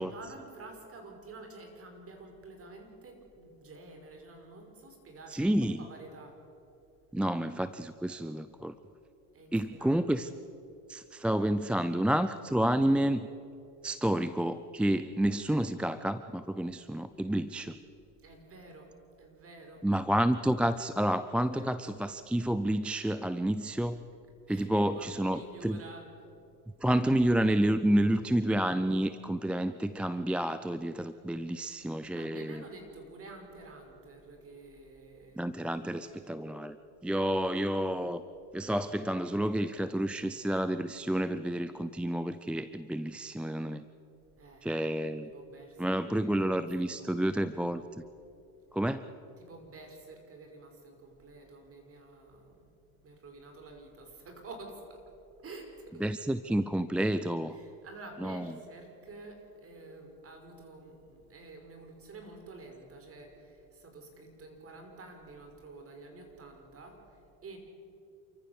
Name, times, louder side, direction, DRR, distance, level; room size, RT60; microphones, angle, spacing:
voice 1, 0.0-6.4 9.3-10.0 18.2-19.9 21.3-21.7 24.5-26.1 32.2-36.5 44.4-44.7 45.2-47.4 49.4-52.7 53.0-55.1 55.4-56.4 57.5-67.6, right 2 dB, 30° right, 4 dB, 5.2 m, -50 dB
voice 2, 5.3-5.9 7.1-8.7 9.5-10.3 10.9-13.3 13.8-17.8 19.8-24.0 24.5-25.8 26.8-32.6 35.4-36.8 37.0-38.2 38.5-43.8 44.6-45.3 45.8-47.8 48.7-49.0 56.0-57.6 58.2-58.5, right 1 dB, 5° right, 13 dB, 0.4 m, -29 dB
29.0 x 14.0 x 7.1 m, 2.8 s
supercardioid pair, 100°, 43 cm